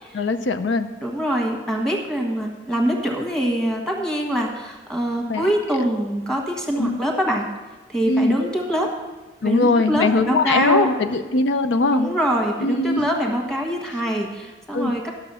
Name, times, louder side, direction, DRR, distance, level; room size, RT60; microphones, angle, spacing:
voice 1, 0.1-0.9 5.3-5.5 6.8-7.0 8.1-8.4 9.4-12.1 12.6-13.1 14.7-14.9, left 3 dB, 90° left, 9 dB, 0.5 m, -21 dB
voice 2, 1.0-7.5 7.9-8.9 9.4-10.9 11.9-15.1, equal, 5° left, 0 dB, 1.5 m, -24 dB
12.0 x 6.6 x 5.6 m, 1.2 s
head